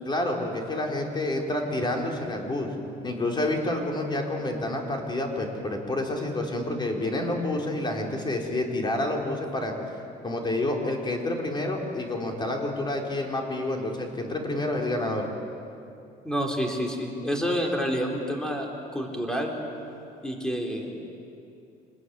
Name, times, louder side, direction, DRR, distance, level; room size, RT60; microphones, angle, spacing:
voice 1, 0.1-2.7 3.0-9.7 10.2-15.3, left 1 dB, 25° left, 1 dB, 4.5 m, -28 dB
voice 2, 16.2-19.6 20.2-21.0, equal, 5° left, 1 dB, 4.1 m, -29 dB
27.0 x 20.5 x 9.6 m, 2.6 s
cardioid pair, 110°, 17 cm